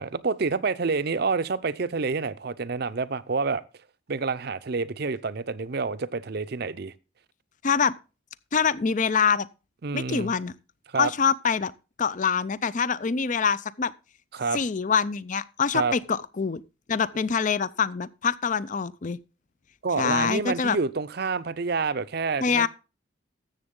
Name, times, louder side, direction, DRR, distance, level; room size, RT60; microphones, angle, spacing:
voice 1, 0.0-3.6 4.1-6.9 9.8-10.3 10.9-11.1 14.3-14.6 15.7-15.9 19.8-22.7, right 4 dB, 50° right, 0.6 m, -28 dB
voice 2, 8.5-9.5 9.9-10.5 11.0-11.7 12.0-13.9 14.5-16.6 16.9-19.2 20.0-20.8 22.4-22.7, left 6 dB, 40° left, 0.4 m, -25 dB
13.0 x 7.8 x 3.7 m
head